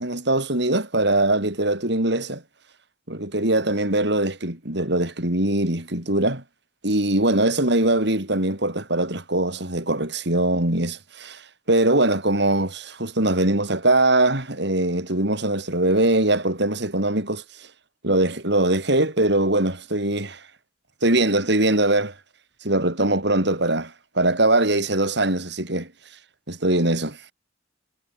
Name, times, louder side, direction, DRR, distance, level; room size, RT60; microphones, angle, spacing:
voice 1, 0.0-2.4 3.1-6.4 6.8-11.4 11.7-17.4 18.0-20.4 21.0-22.1 22.6-25.9 26.5-27.2, right 2 dB, 65° right, 5.8 m, -22 dB
head